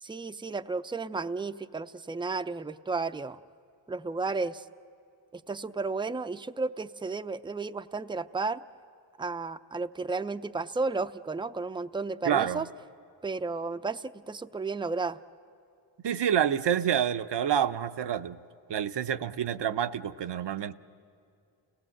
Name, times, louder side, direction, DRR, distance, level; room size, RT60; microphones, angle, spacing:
voice 1, 0.0-3.4 3.9-4.7 5.3-8.6 9.2-12.7 13.2-15.2, right 3 dB, 10° right, 11 dB, 0.6 m, -33 dB
voice 2, 12.3-12.6 16.0-18.4 18.7-20.7, right 9 dB, 60° right, 11 dB, 0.8 m, -28 dB
29.5 x 17.5 x 7.8 m, 2.5 s
cardioid pair, 50°, 47 cm